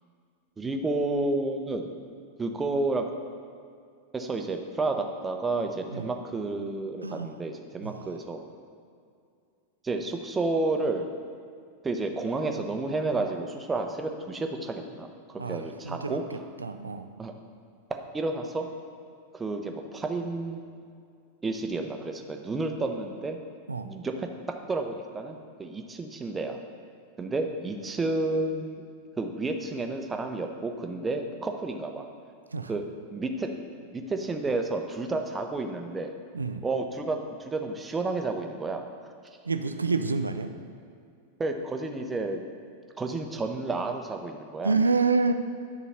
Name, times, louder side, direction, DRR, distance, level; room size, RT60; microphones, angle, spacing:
voice 1, 0.6-1.9 2.4-3.1 4.1-8.5 9.8-11.1 11.8-15.1 15.5-16.5 17.2-17.3 18.1-18.7 19.3-20.8 21.4-23.4 23.8-24.3 24.7-26.6 27.2-28.8 29.2-32.1 32.7-32.8 33.1-33.5 33.9-36.1 36.6-38.8 41.4-42.4 43.0-44.7, right 2 dB, 15° right, 4 dB, 0.7 m, -31 dB
voice 2, 7.0-7.3 7.8-8.0 15.4-16.2 16.6-17.1 23.7-23.9 32.5-32.7 36.3-36.6 39.5-40.5 44.6-45.3, right 4 dB, 80° right, 8 dB, 0.4 m, -27 dB
10.0 x 4.0 x 5.7 m, 2.3 s
figure-of-eight pair, 90°, 0 cm